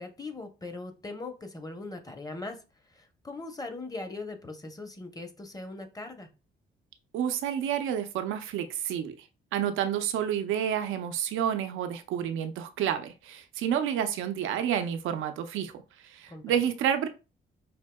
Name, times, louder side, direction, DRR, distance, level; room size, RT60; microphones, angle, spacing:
voice 1, 0.0-2.6 2.9-6.3 16.3-16.6, left 2 dB, 20° left, 0.8 m, -40 dB
voice 2, 7.1-9.1 9.5-17.1, right 9 dB, 85° right, 0.6 m, -29 dB
5.0 x 2.7 x 2.2 m
cardioid pair, 90°, 20 cm